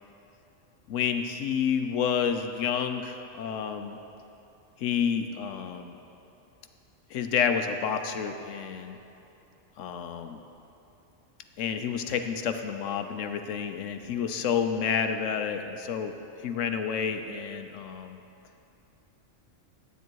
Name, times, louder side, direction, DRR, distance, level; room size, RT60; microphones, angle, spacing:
voice 1, 0.9-4.0 4.8-6.0 7.1-9.0 9.8-10.4 11.6-18.2, left 7 dB, 75° left, 7 dB, 1.0 m, -29 dB
12.0 x 9.1 x 4.6 m, 2.9 s
omnidirectional pair, 1.3 m